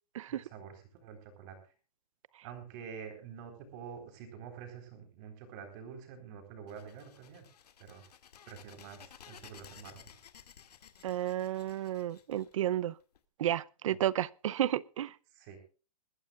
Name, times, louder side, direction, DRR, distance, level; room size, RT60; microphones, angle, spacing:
voice 1, 0.3-1.6 2.4-7.4 7.8-8.0 8.5-10.1 13.9-14.0 15.3-15.6, right 7 dB, 30° right, 4.1 m, -47 dB
sound 1, 6.7-13.2, left 8 dB, 85° left, 2.2 m, -56 dB
voice 2, 11.0-12.9 13.4-15.1, right 12 dB, 55° right, 0.6 m, -32 dB
22.0 x 14.5 x 2.4 m
hypercardioid pair, 175°, 20 cm